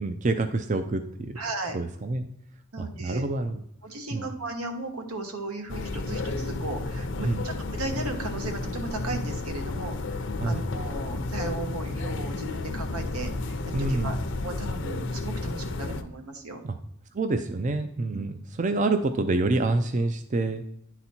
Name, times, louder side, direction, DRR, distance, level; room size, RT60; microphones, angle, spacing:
voice 1, 0.0-1.4 1.7-2.3 2.8-3.6 4.1-4.3 7.2-7.4 10.4-10.6 13.7-14.2 16.6-16.8 17.1-20.6, right 2 dB, 35° right, 8 dB, 0.4 m, -27 dB
voice 2, 1.4-1.8 2.7-3.2 3.8-13.3 13.8-14.2 14.4-16.6, right 2 dB, 85° right, 5 dB, 1.3 m, -36 dB
sound 1, 5.7-16.0, left 2 dB, 55° left, 0.6 m, -32 dB
10.5 x 4.1 x 4.3 m, 0.72 s
head